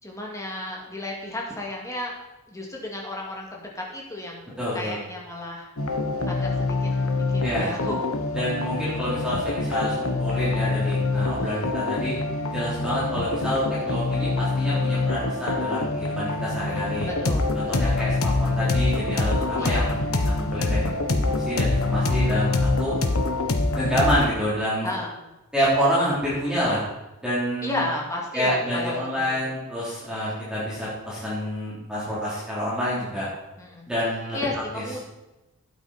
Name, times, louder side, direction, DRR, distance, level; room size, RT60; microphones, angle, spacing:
voice 1, 0.0-5.7 6.2-6.9 7.3-8.1 11.4-11.7 12.9-13.0 17.0-17.5 17.8-18.1 19.6-19.9 24.8-25.1 27.6-29.5 33.6-33.9 34.3-35.0, left 1 dB, 15° left, -2 dB, 2.4 m, -33 dB
voice 2, 4.6-5.0 7.4-7.7 8.3-12.1 12.5-17.1 17.6-20.9 21.2-22.9 23.7-24.9 25.5-26.8 27.2-27.8 28.3-33.3 33.9-34.4, equal, 5° right, -9 dB, 3.7 m, -27 dB
sound 1, 5.8-24.3, left 2 dB, 80° left, 1.2 m, -25 dB
12.0 x 9.0 x 4.4 m, 0.97 s
head